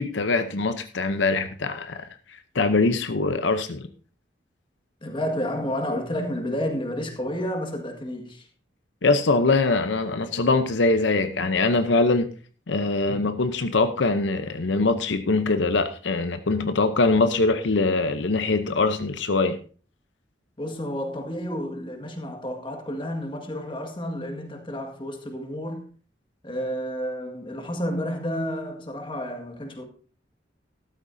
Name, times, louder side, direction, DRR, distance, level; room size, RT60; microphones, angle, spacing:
voice 1, 0.0-2.1 2.5-3.9 9.0-12.3 12.7-19.6, left 3 dB, 80° left, 0.7 m, -23 dB
voice 2, 5.0-8.4 20.6-25.8 26.4-29.8, equal, 25° left, 1.8 m, -30 dB
13.0 x 12.5 x 2.7 m
head